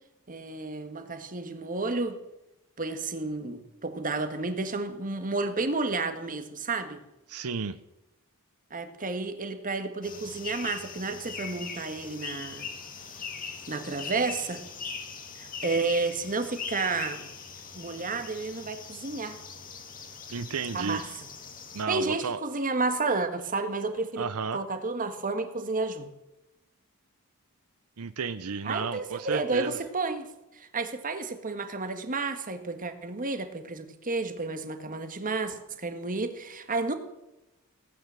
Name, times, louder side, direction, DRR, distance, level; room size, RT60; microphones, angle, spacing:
voice 1, 0.3-2.2 2.8-7.0 8.7-12.7 13.7-14.6 15.4-17.3 17.7-19.4 20.7-21.1 21.9-24.3 24.5-26.1 28.6-30.3 30.5-37.0, right 3 dB, 40° right, 8 dB, 1.6 m, -31 dB
voice 2, 7.3-7.8 20.3-21.1 21.7-22.4 24.2-24.6 28.0-29.8, right 5 dB, 85° right, 12 dB, 0.7 m, -32 dB
sound 1, 10.0-21.8, left 5 dB, 40° left, 2.0 m, -41 dB
17.0 x 9.0 x 7.5 m, 0.94 s
head